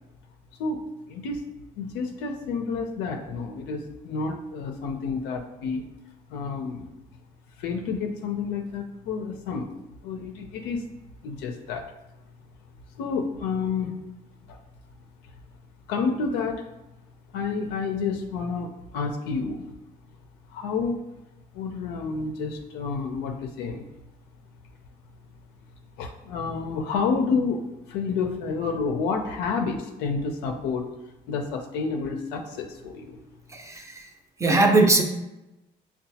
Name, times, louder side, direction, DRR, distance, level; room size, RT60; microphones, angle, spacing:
voice 1, 1.1-1.4 1.8-5.8 6.3-6.9 7.6-9.7 10.0-10.8 11.2-11.9 13.0-13.9 14.5-14.6 15.9-16.6 17.3-19.7 20.5-21.0 21.5-23.8 26.0-30.9 31.3-33.2, left 4 dB, 90° left, 3 dB, 0.5 m, -29 dB
voice 2, 33.5-34.1 34.4-35.0, right 2 dB, 15° right, 3 dB, 0.5 m, -20 dB
5.5 x 2.2 x 2.7 m, 0.93 s
cardioid pair, 110°, 17 cm